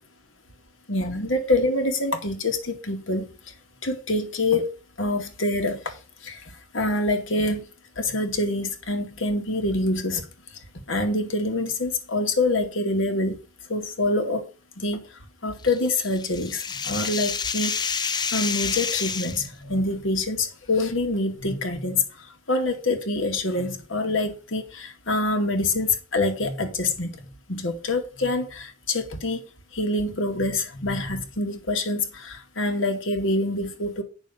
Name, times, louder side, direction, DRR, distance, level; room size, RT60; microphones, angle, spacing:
voice 1, 0.9-3.3 3.8-4.7 5.0-5.9 6.2-6.4 6.7-7.6 8.0-10.2 10.9-13.4 13.7-14.5 14.8-15.0 15.4-22.0 22.5-29.4 29.7-34.0, left 2 dB, 85° left, 2.1 m, -26 dB
sound 1, 15.6-19.5, left 6 dB, 20° left, 0.5 m, -29 dB
9.0 x 6.5 x 5.4 m
head